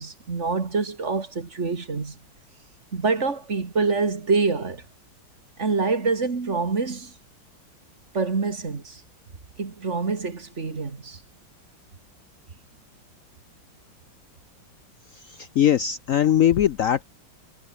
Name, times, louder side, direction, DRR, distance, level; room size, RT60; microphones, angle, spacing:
voice 1, 0.0-2.2 2.9-4.9 5.6-7.1 8.1-9.0 9.6-11.2, right 4 dB, 35° right, 2.2 m, -26 dB
voice 2, 15.4-17.0, left 10 dB, 90° left, 0.7 m, -20 dB
omnidirectional pair, 2.3 m